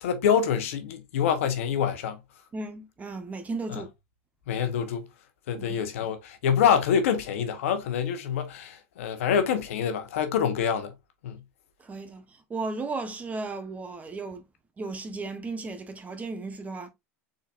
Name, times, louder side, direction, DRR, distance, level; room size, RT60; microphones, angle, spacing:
voice 1, 0.0-2.2 3.7-3.8 4.5-5.1 5.5-10.9 11.2-11.4, left 8 dB, 80° left, 1.0 m, -26 dB
voice 2, 2.5-3.9 5.6-5.8 11.8-14.4 14.8-16.9, right 3 dB, 20° right, 1.1 m, -35 dB
4.1 x 3.9 x 2.5 m
hypercardioid pair, 105°, 7 cm